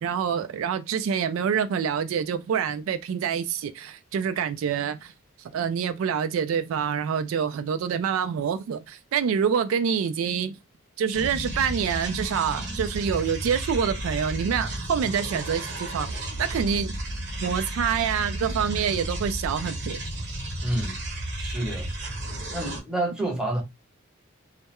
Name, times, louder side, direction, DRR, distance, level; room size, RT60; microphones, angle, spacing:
voice 1, 0.0-5.1 5.5-10.6 11.0-17.0 17.4-20.0, right 7 dB, 85° right, 0.3 m, -26 dB
sound 1, 11.1-22.8, right 1 dB, 55° right, 0.8 m, -33 dB
voice 2, 20.6-21.0 21.4-21.9 22.5-23.6, right 1 dB, 5° right, 0.6 m, -28 dB
2.2 x 2.1 x 2.9 m
head